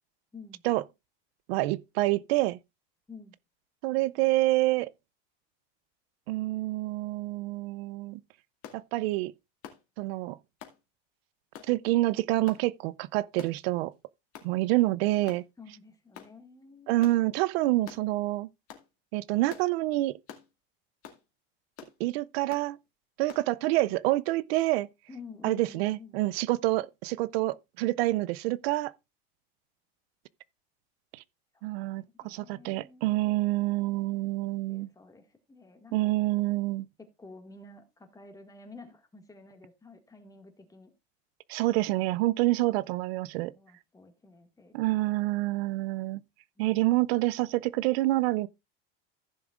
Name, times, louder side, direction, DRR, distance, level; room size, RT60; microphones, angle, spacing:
voice 1, 0.3-0.6 3.1-3.4 15.6-17.1 17.7-18.0 25.1-26.3 31.5-33.0 33.7-36.4 37.0-40.9 43.5-44.8 46.5-46.9, left 4 dB, 10° left, 1.8 m, -51 dB
voice 2, 1.5-2.6 3.8-4.9 6.3-8.2 8.7-9.3 10.0-10.4 11.7-13.9 14.4-15.4 16.9-18.5 19.1-20.2 22.0-22.8 23.2-24.9 25.4-28.9 31.6-34.9 35.9-36.9 41.5-43.5 44.7-46.2 46.6-48.5, right 18 dB, 85° right, 0.5 m, -27 dB
sound 1, 8.6-8.8 9.6-9.9 10.6-10.8 11.5-11.7 12.5-12.7 13.4-13.6 14.3-14.5 15.3-15.5 16.1-16.3 17.0-17.2 17.9-18.0 18.7-18.9 19.5-19.7 20.3-20.5 21.0-21.2 21.8-22.0 22.5-22.7 23.3-23.5, left 9 dB, 50° left, 2.1 m, -47 dB
15.0 x 7.1 x 2.4 m
supercardioid pair, 135°, 30 cm